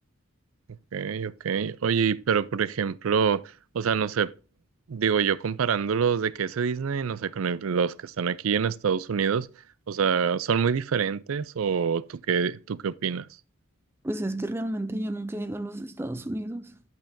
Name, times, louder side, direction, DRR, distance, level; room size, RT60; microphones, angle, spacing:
voice 1, 0.9-4.3 4.9-9.5 9.9-13.3, right 6 dB, 90° right, 0.5 m, -26 dB
voice 2, 14.0-16.8, right 1 dB, 10° right, 0.4 m, -32 dB
11.5 x 7.9 x 2.7 m
head